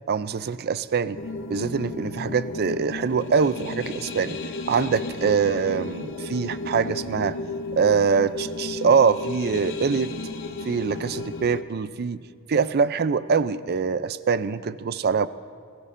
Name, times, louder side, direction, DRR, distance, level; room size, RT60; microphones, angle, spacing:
voice 1, 0.1-1.2 1.5-4.4 4.7-7.4 7.7-10.1 10.6-12.2 12.5-15.3, right 5 dB, 50° right, 15 dB, 0.4 m, -24 dB
sound 1, 1.2-11.6, left 3 dB, 60° left, 0.7 m, -33 dB
21.5 x 19.5 x 2.6 m, 2.1 s
head